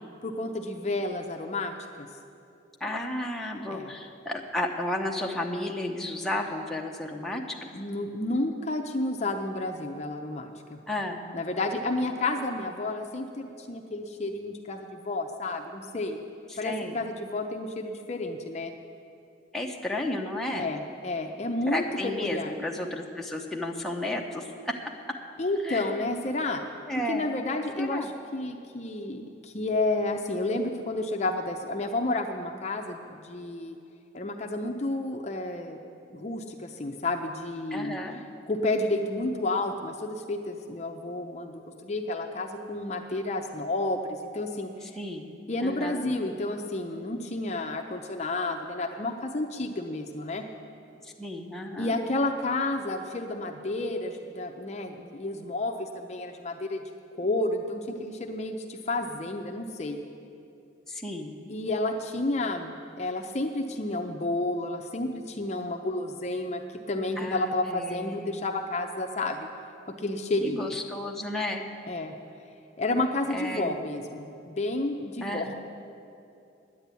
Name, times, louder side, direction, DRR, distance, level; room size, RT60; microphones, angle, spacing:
voice 1, 0.2-2.1 3.7-3.9 7.7-10.8 11.3-16.2 16.6-18.7 20.5-22.6 25.4-26.6 27.1-33.8 34.1-35.8 36.1-38.0 38.5-44.9 45.5-50.4 51.8-56.8 57.1-60.0 61.5-66.6 66.9-69.5 70.0-70.7 71.9-72.1 72.8-75.5, left 2 dB, 35° left, 3 dB, 0.6 m, -31 dB
voice 2, 2.8-7.7 10.9-11.2 16.5-17.0 19.5-20.7 21.7-24.8 25.6-26.0 26.9-27.3 27.8-28.1 37.7-38.2 45.0-45.4 45.6-46.1 51.0-51.9 60.9-61.4 67.2-68.3 70.4-71.7 73.3-73.8 75.2-75.5, left 1 dB, ahead, -1 dB, 0.8 m, -33 dB
9.9 x 9.9 x 8.2 m, 2.7 s
head